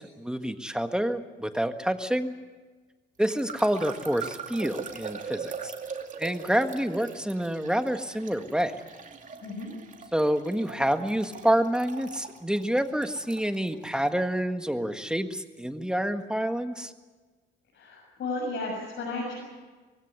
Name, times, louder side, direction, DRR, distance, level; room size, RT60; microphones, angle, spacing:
voice 1, 0.0-2.3 3.2-5.7 6.2-8.8 10.1-16.9, right 1 dB, 5° right, 7 dB, 1.6 m, -28 dB
sound 1, 3.2-14.0, right 6 dB, 40° right, 2.6 m, -41 dB
voice 2, 9.4-9.7 17.7-19.4, left 2 dB, 65° left, -3 dB, 7.2 m, -33 dB
23.0 x 16.5 x 9.8 m, 1.3 s
cardioid pair, 90°, 20 cm